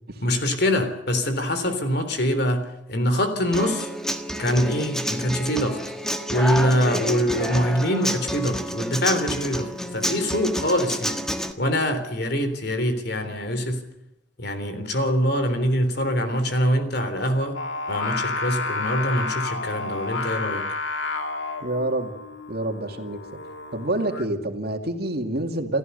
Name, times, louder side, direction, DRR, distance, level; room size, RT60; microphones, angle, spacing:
voice 1, 0.2-3.9 4.4-5.8 6.3-11.2 11.6-13.8 14.4-17.6 17.9-20.6, equal, 60° left, 8 dB, 3.6 m, -24 dB
Human voice / Acoustic guitar, 3.5-11.5, equal, 5° left, 1.5 m, -29 dB
Singing, 17.5-24.3, left 3 dB, 80° left, 1.9 m, -31 dB
voice 2, 21.6-22.1 22.5-23.2 23.7-25.8, right 1 dB, 55° right, 4 dB, 2.5 m, -27 dB
28.5 x 14.5 x 6.9 m, 0.90 s
head